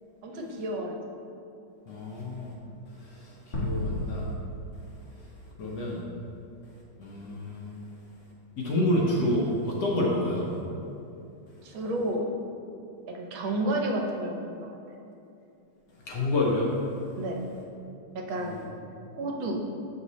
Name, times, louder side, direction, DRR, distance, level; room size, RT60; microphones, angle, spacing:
voice 1, 0.2-1.0 11.6-12.2 13.1-14.8 17.2-17.4 18.1-18.7 19.1-19.7, right 1 dB, 75° right, 1 dB, 1.4 m, -31 dB
voice 2, 1.9-2.5 3.1-4.3 5.6-6.0 7.0-7.7 8.6-10.6 16.1-16.7 18.4-18.6, left 1 dB, 65° left, -3 dB, 1.2 m, -28 dB
sound 1, 3.5-6.0, equal, 40° left, 0.8 m, -33 dB
7.0 x 5.4 x 3.1 m, 2.7 s
omnidirectional pair, 2.3 m